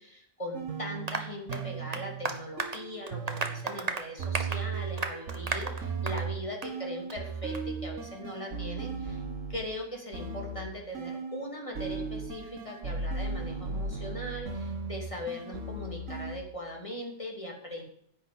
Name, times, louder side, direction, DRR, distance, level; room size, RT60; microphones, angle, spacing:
voice 1, 0.0-9.2 9.5-17.8, left 1 dB, 25° left, 0 dB, 3.1 m, -40 dB
sound 1, 0.5-9.7 10.1-11.5 11.7-16.4, right 4 dB, 75° right, 1.8 m, -37 dB
Applause, 1.1-6.3 6.6-6.8 7.1-7.2 7.5-7.6, right 4 dB, 35° right, 1.1 m, -35 dB
10.0 x 8.2 x 8.7 m, 0.66 s
omnidirectional pair, 1.3 m